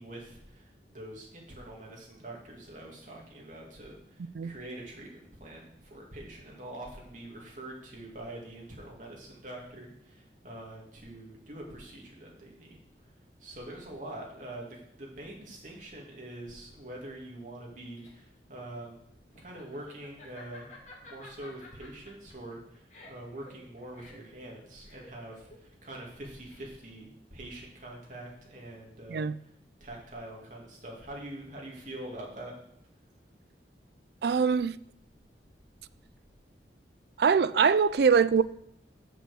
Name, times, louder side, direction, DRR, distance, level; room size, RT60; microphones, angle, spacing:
voice 1, 0.0-12.8 13.4-19.0 19.4-20.7 21.0-29.3 29.8-32.6, right 1 dB, 45° right, 2.4 m, -44 dB
Laughter, 17.6-27.0, left 2 dB, 40° left, 2.2 m, -53 dB
voice 2, 34.2-34.8 37.2-38.4, right 6 dB, 60° right, 0.3 m, -23 dB
7.1 x 6.1 x 6.8 m
head